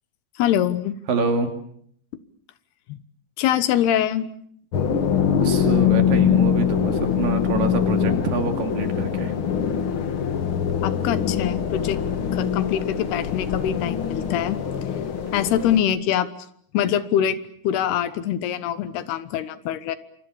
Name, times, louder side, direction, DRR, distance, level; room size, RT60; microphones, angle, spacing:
voice 1, 0.4-0.9 2.9-3.0 3.4-4.3 10.8-12.0 12.3-14.6 15.3-16.3 16.7-17.4 17.6-20.0, left 10 dB, 90° left, 14 dB, 3.3 m, -24 dB
voice 2, 1.1-1.5 5.4-9.3, right 4 dB, 65° right, 6 dB, 4.2 m, -26 dB
sound 1, 4.7-15.8, left 8 dB, 50° left, 1.6 m, -23 dB
27.0 x 25.0 x 7.2 m, 0.65 s
omnidirectional pair, 4.5 m